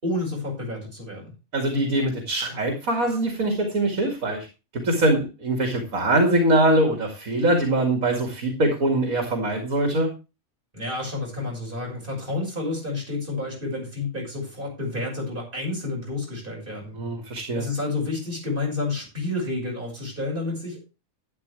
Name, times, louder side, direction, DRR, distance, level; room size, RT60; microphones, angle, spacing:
voice 1, 0.0-1.3 10.7-16.9 17.6-21.0, left 2 dB, 40° right, -1 dB, 6.4 m, -30 dB
voice 2, 1.5-4.5 4.7-10.1 16.9-17.7, right 1 dB, 85° right, 3 dB, 2.7 m, -23 dB
12.0 x 10.0 x 3.3 m, 0.29 s
omnidirectional pair, 1.4 m